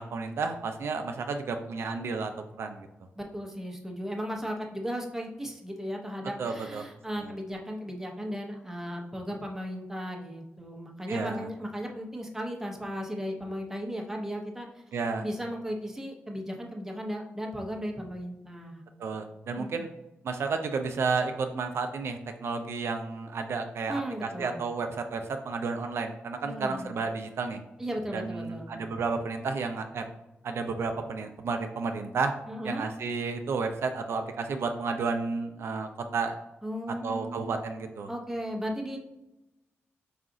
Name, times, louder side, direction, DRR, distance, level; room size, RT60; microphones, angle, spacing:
voice 1, 0.0-2.3 2.6-2.9 6.4-6.8 7.2-7.3 11.1-11.5 14.9-15.2 19.0-19.9 20.2-27.6 28.1-30.0 30.4-32.3 32.6-36.4 37.0-38.1, right 4 dB, 70° right, 6 dB, 0.4 m, -32 dB
voice 2, 3.1-14.8 15.2-18.8 19.5-19.9 23.9-24.6 26.4-26.9 27.8-28.8 32.5-32.9 36.6-37.7 38.1-39.0, equal, 10° right, 0 dB, 0.8 m, -36 dB
4.9 x 2.4 x 3.8 m, 0.95 s
cardioid pair, 95°, 5 cm